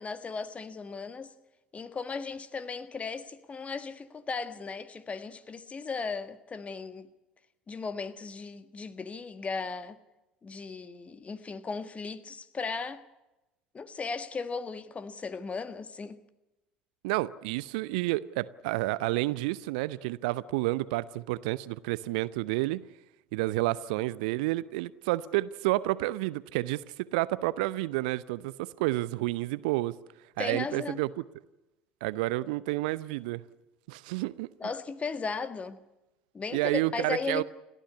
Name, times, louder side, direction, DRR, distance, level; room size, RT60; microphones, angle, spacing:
voice 1, 0.0-1.3 1.7-7.1 7.7-10.0 10.4-13.0 13.7-16.2 30.4-31.0 34.6-35.8 36.3-37.4, left 4 dB, 25° left, 1.6 m, -36 dB
voice 2, 17.0-22.8 23.3-29.9 30.4-31.1 32.0-33.4 33.9-34.5 36.5-37.4, right 18 dB, 65° right, 0.7 m, -30 dB
29.5 x 13.0 x 9.7 m
figure-of-eight pair, 60°, 5 cm